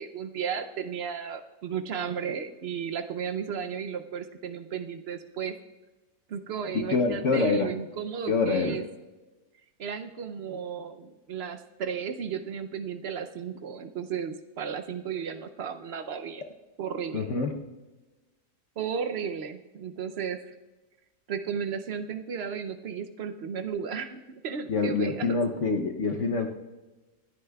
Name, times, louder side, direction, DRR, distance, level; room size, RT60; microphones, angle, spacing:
voice 1, 0.0-5.5 6.3-8.8 9.8-16.4 16.8-17.3 18.8-20.5 21.3-25.4, right 7 dB, 65° right, 7 dB, 0.6 m, -34 dB
voice 2, 6.9-7.7 8.3-8.8 17.1-17.6 24.7-26.5, left 3 dB, 55° left, 3 dB, 1.1 m, -26 dB
27.0 x 9.8 x 2.3 m, 1.2 s
omnidirectional pair, 1.7 m